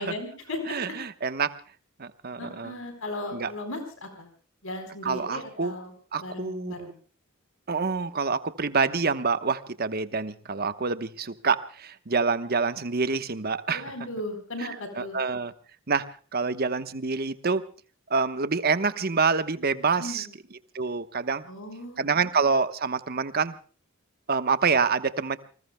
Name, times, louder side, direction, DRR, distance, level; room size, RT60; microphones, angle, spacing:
voice 1, 0.0-0.8 2.4-4.3 4.6-5.9 6.2-6.9 13.7-15.2 20.0-20.3 21.4-22.1, left 1 dB, 75° left, 6 dB, 4.2 m, -36 dB
voice 2, 0.7-1.5 2.0-2.7 3.3-3.5 5.0-5.7 6.1-6.9 7.7-13.8 15.0-15.5 15.9-16.0 16.3-17.6 18.1-20.3 20.7-21.4 22.0-23.6 24.3-25.4, right 4 dB, 50° right, 12 dB, 1.1 m, -26 dB
29.0 x 20.0 x 2.2 m, 0.39 s
head